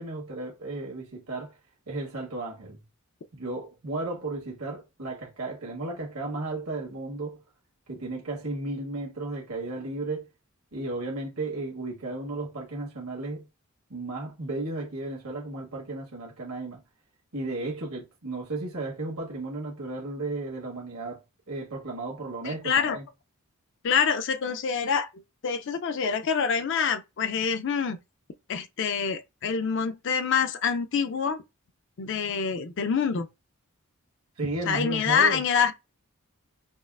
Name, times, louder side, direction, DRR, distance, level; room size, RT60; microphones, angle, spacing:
voice 1, 0.0-1.6 1.9-2.8 3.3-7.4 7.9-10.2 10.7-13.4 13.9-16.8 17.3-21.2 21.5-23.0 34.4-35.4, right 2 dB, 75° right, 1.5 m, -34 dB
voice 2, 22.4-23.0 23.8-25.1 25.4-28.0 28.5-31.4 32.0-33.3 34.7-35.7, left 6 dB, 55° left, 0.4 m, -26 dB
5.3 x 2.4 x 2.3 m
head